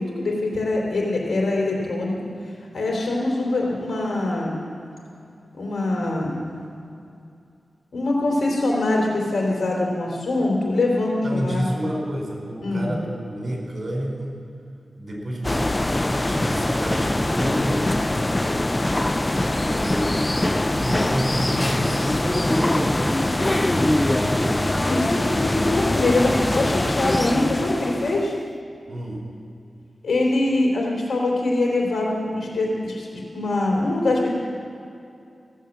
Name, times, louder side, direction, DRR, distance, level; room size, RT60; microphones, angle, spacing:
voice 1, 0.0-2.2 2.7-4.6 5.5-6.4 7.9-11.6 12.6-12.9 24.9-28.3 30.0-33.1 33.3-34.3, left 2 dB, 85° left, -2 dB, 3.5 m, -23 dB
voice 2, 11.2-14.4 15.0-15.7 16.1-17.9 19.6-20.4 20.6-24.6 28.9-29.2, equal, 55° right, -1 dB, 4.4 m, -29 dB
sound 1, 15.4-28.4, left 1 dB, 20° left, 0.5 m, -23 dB
16.5 x 8.1 x 7.4 m, 2.5 s
cardioid pair, 60°, 0 cm